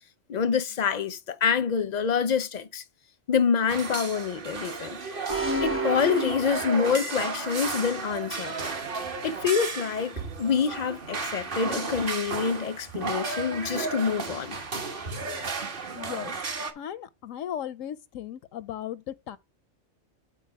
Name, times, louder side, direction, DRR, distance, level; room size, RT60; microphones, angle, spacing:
voice 1, 0.3-2.8 3.3-4.9 5.6-8.6 9.2-14.6, left 6 dB, 45° left, 0.6 m, -26 dB
sound 1, 3.7-16.7, right 4 dB, 45° right, 1.2 m, -33 dB
sound 2, 5.3-7.3, right 1 dB, 10° right, 0.7 m, -31 dB
voice 2, 15.9-16.4 16.8-19.4, left 10 dB, 80° left, 1.0 m, -36 dB
8.4 x 4.3 x 4.6 m
omnidirectional pair, 1.3 m